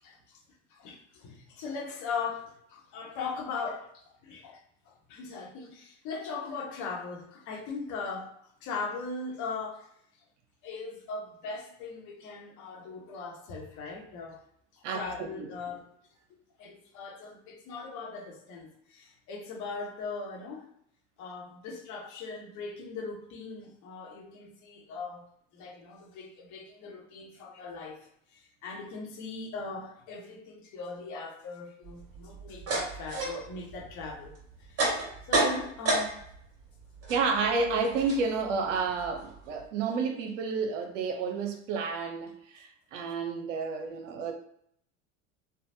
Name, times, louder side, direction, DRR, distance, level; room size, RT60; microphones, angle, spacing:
voice 1, 0.0-0.4 0.7-4.6 5.1-9.9 10.6-14.4 14.7-15.9 16.3-20.7 21.2-25.3 25.5-28.0 28.3-34.3 34.6-36.2, left 4 dB, 50° left, 1.0 m, -39 dB
voice 2, 14.8-15.5 37.1-44.3, right 4 dB, 80° right, 0.7 m, -30 dB
sound 1, 31.9-36.4 36.7-39.6, right 2 dB, 40° right, 1.5 m, -32 dB
3.4 x 2.2 x 2.6 m
hypercardioid pair, 85°, 37 cm